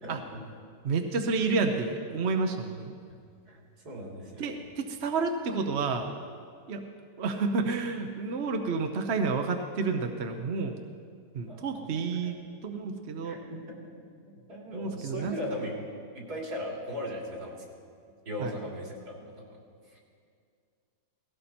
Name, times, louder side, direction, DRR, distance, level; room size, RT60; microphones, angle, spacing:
voice 1, 0.0-0.4 3.5-4.6 11.5-11.6 11.9-12.5 13.2-13.8 14.3-15.8 16.1-17.6 18.3-19.6 19.9-20.0, equal, 70° right, -2 dB, 3.6 m, -38 dB
voice 2, 0.8-2.9 4.4-6.1 6.7-6.8 7.2-10.7 11.3-12.4 12.6-13.4 14.7-15.3 18.4-18.5, right 4 dB, 50° right, 5 dB, 1.0 m, -30 dB
18.0 x 17.5 x 4.3 m, 2.2 s
omnidirectional pair, 1.7 m